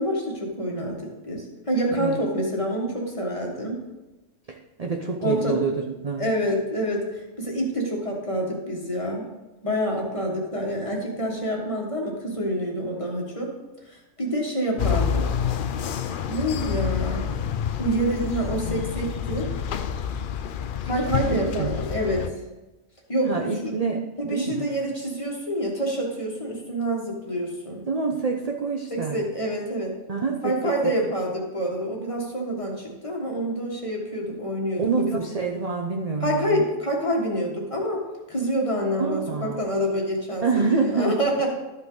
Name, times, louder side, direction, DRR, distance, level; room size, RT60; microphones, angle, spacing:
voice 1, 0.0-3.8 5.2-5.6 6.2-9.2 9.6-13.5 13.9-15.3 16.3-17.2 17.8-19.5 20.8-22.3 23.1-23.8 24.2-27.8 28.9-29.9 30.4-35.2 36.2-38.0 38.3-41.5, equal, 25° left, -1 dB, 1.5 m, -27 dB
voice 2, 4.5-6.3 21.3-21.8 23.3-24.7 27.9-29.2 30.1-30.7 34.8-36.7 39.0-39.6 40.4-41.1, right 4 dB, 40° right, 1 dB, 0.6 m, -27 dB
sound 1, 14.8-22.3, left 8 dB, 65° left, 0.5 m, -28 dB
12.5 x 5.5 x 3.9 m, 1.1 s
omnidirectional pair, 1.4 m